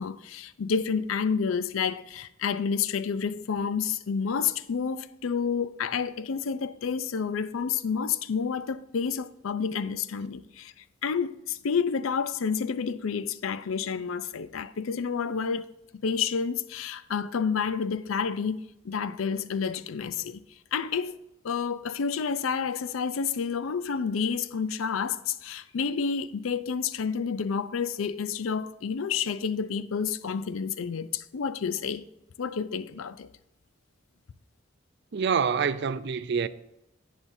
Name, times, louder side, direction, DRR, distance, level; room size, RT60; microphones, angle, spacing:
voice 1, 0.0-10.7 11.0-15.7 16.0-20.4 20.7-21.2 21.4-32.1 32.4-33.3, left 6 dB, 85° left, 0.5 m, -29 dB
voice 2, 35.1-36.5, right 6 dB, 60° right, 0.4 m, -26 dB
11.0 x 8.7 x 2.7 m
head